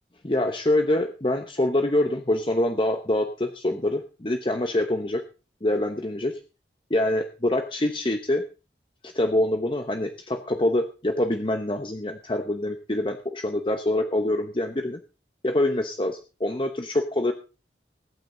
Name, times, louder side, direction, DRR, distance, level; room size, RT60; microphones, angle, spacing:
voice 1, 0.2-5.2 5.6-6.4 6.9-8.4 9.0-15.0 15.4-17.3, left 1 dB, 30° left, 5 dB, 0.9 m, -25 dB
20.0 x 9.1 x 3.9 m, 0.34 s
head